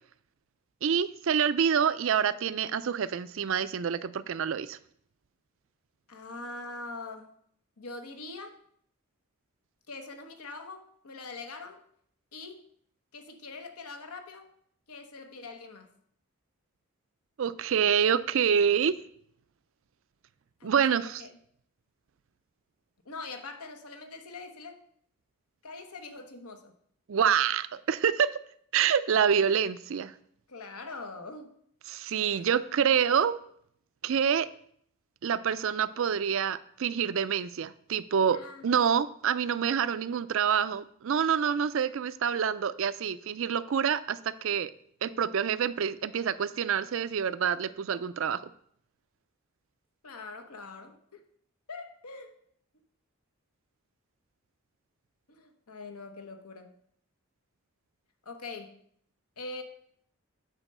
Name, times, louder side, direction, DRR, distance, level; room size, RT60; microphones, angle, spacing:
voice 1, 0.8-4.8 17.4-18.9 20.6-21.2 27.1-28.4 28.7-30.1 31.9-33.3 34.0-34.5 35.2-38.4 38.6-44.7 45.0-48.4, right 7 dB, 60° right, 15 dB, 0.4 m, -27 dB
voice 2, 6.1-7.3 7.8-8.6 9.9-11.8 12.3-12.6 13.1-14.5 14.9-15.9 20.6-21.3 23.0-24.8 25.6-26.7 30.5-31.5 32.3-32.5 38.3-38.6 50.0-51.2 51.7-52.4 55.3-56.7 58.2-58.8 59.4-59.6, left 3 dB, 85° left, 6 dB, 1.1 m, -43 dB
9.0 x 4.4 x 6.6 m, 0.67 s
head